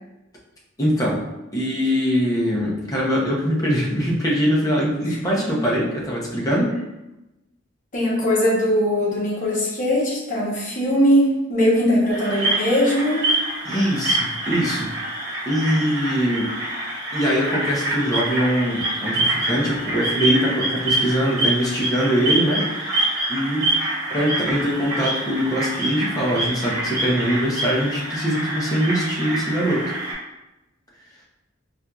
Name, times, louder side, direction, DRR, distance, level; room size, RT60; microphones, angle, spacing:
voice 1, 0.8-1.2 1.5-6.8 13.6-14.9 15.5-16.5 17.1-23.7 24.1-29.9, equal, 15° left, -4 dB, 0.7 m, -22 dB
voice 2, 5.1-5.4 7.9-13.3, equal, 40° left, -5 dB, 0.9 m, -20 dB
sound 1, 12.1-30.1, right 1 dB, 50° right, 1.1 m, -26 dB
4.3 x 2.5 x 2.3 m, 0.97 s
head